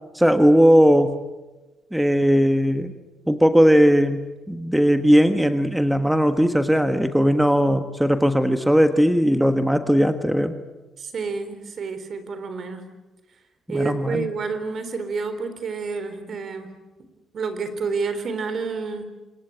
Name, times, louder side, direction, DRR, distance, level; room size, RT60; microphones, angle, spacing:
voice 1, 0.1-1.2 1.9-2.9 3.3-10.5 13.7-14.3, equal, 5° right, 8 dB, 1.4 m, -18 dB
voice 2, 11.0-12.9 13.7-16.7 17.3-19.1, right 4 dB, 55° right, 10 dB, 3.9 m, -29 dB
26.5 x 20.5 x 8.8 m, 1.1 s
cardioid pair, 90°, 0 cm